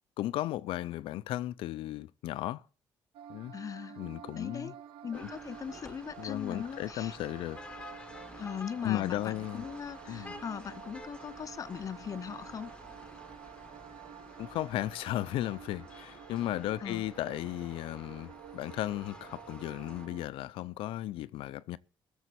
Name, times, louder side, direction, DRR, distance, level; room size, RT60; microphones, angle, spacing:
voice 1, 0.2-2.6 3.3-3.5 4.0-4.7 5.1-5.3 6.2-7.6 8.8-9.6 10.1-10.3 14.4-21.8, left 14 dB, 85° left, 0.6 m, -35 dB
sound 1, 3.1-20.3, right 9 dB, 90° right, 0.8 m, -50 dB
voice 2, 3.5-4.0 4.4-4.7 5.0-7.2 8.4-12.7 16.8-17.0, left 7 dB, 40° left, 0.6 m, -40 dB
sound 2, 5.1-20.1, left 2 dB, 10° left, 1.5 m, -51 dB
17.0 x 7.2 x 8.2 m
cardioid pair, 100°, 9 cm